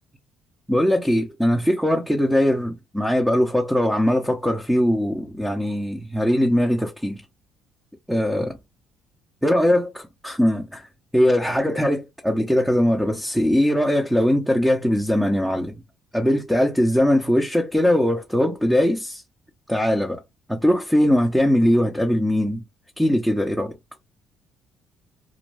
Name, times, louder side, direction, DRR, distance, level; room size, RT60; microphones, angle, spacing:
voice 1, 0.7-7.2 8.1-8.6 9.4-10.9 11.1-15.8 16.1-19.2 19.7-20.2 20.5-22.6 23.0-23.8, equal, 5° right, 0.7 m, -20 dB
2.5 x 2.2 x 3.3 m
supercardioid pair, 80°, 0 cm